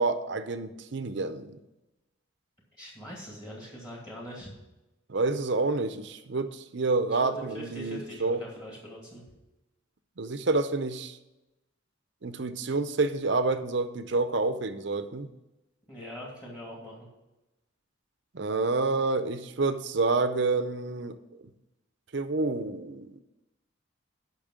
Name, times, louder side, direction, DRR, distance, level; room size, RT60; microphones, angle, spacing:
voice 1, 0.0-1.6 5.1-8.4 10.2-11.2 12.2-15.3 18.3-21.2 22.1-23.2, right 3 dB, 55° right, 11 dB, 0.6 m, -28 dB
voice 2, 2.8-4.5 7.1-9.2 15.9-17.1, equal, 20° left, -3 dB, 2.2 m, -42 dB
8.7 x 6.0 x 6.2 m, 0.99 s
head